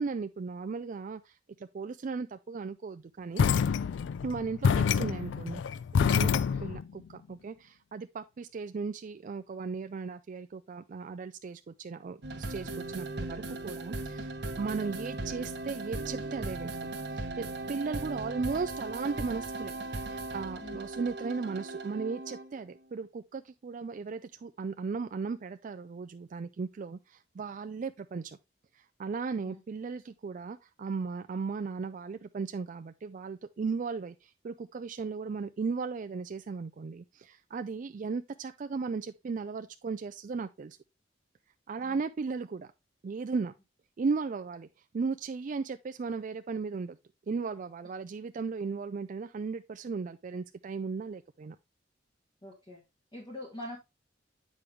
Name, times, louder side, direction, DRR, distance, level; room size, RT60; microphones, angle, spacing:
voice 1, 0.0-3.5 4.2-5.6 6.1-6.3 6.6-16.7 17.2-19.7 20.0-28.4 28.7-40.8 41.7-42.7 43.0-43.5 44.0-44.7 44.9-47.0 47.3-51.6, right 4 dB, 45° right, 0.4 m, -36 dB
sound 1, 3.4-6.9, left 6 dB, 70° left, 0.3 m, -27 dB
sound 2, 12.2-22.6, right 2 dB, 65° right, 1.0 m, -38 dB
voice 2, 52.4-52.8 53.1-53.8, left 1 dB, 25° left, 1.6 m, -43 dB
8.4 x 5.2 x 3.2 m
head